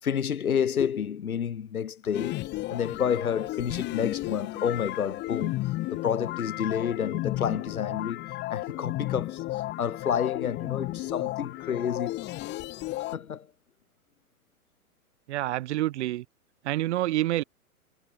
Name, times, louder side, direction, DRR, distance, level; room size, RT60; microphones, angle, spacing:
voice 1, 0.0-5.6 5.9-8.2 8.5-12.2 13.1-13.5, left 8 dB, 70° left, 4.7 m, -29 dB
sound 1, 2.1-13.2, left 17 dB, 25° left, 1.4 m, -33 dB
voice 2, 15.3-16.2 16.6-17.4, right 15 dB, 50° right, 1.5 m, -27 dB
hypercardioid pair, 120°, 44 cm